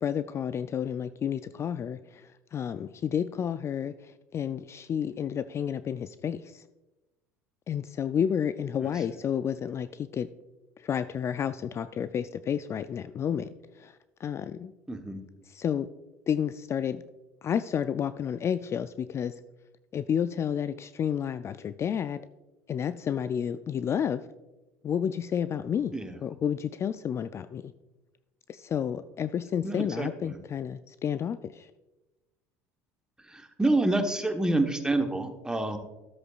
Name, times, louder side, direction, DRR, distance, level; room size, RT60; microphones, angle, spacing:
voice 1, 0.0-6.6 7.7-10.3 10.8-14.7 15.4-15.9 16.3-17.0 17.4-19.4 19.9-22.2 22.7-24.3 24.8-25.9 26.2-27.7 28.5-31.7, left 8 dB, 35° left, 13 dB, 0.3 m, -31 dB
voice 2, 14.9-15.2 25.9-26.2 29.6-30.4 33.3-35.8, right 2 dB, 10° right, 6 dB, 1.1 m, -28 dB
13.0 x 7.9 x 2.4 m, 1.1 s
hypercardioid pair, 75°, 8 cm